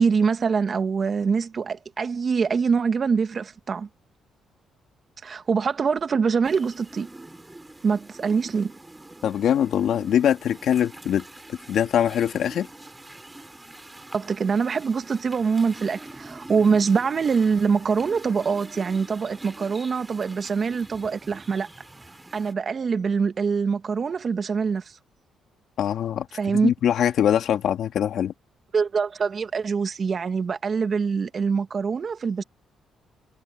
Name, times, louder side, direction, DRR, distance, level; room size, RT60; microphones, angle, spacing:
voice 1, 0.0-3.9 5.2-7.1 7.8-8.7 14.1-21.7 22.3-24.8 26.4-26.7 28.7-32.4, right 5 dB, 45° right, 1.6 m, -24 dB
sound 1, 6.4-22.5, right 2 dB, 15° right, 5.4 m, -45 dB
voice 2, 9.2-12.7 25.8-28.3, left 9 dB, 70° left, 2.2 m, -23 dB
cardioid pair, 90°, 0 cm